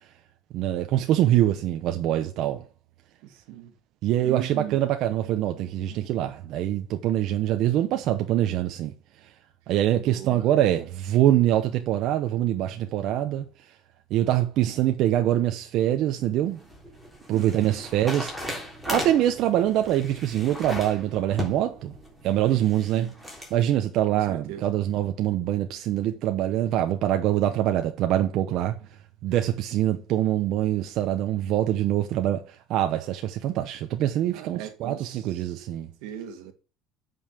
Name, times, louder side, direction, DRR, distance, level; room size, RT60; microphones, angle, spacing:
voice 1, 0.5-2.6 4.0-8.9 9.2-9.3 9.7-13.5 14.1-16.6 17.3-18.6 18.9-21.9 22.2-23.1 23.5-28.8 29.2-35.9, right 12 dB, 55° right, 0.9 m, -24 dB
voice 2, 3.2-3.7 4.2-4.8 10.0-10.5 17.3-17.8 23.0-23.1 24.3-24.7 34.3-35.7 36.0-36.5, right 12 dB, 80° right, 1.7 m, -39 dB
sound 1, 16.2-23.5, left 1 dB, ahead, 3.6 m, -37 dB
8.7 x 5.6 x 6.9 m
cardioid pair, 145°, 0 cm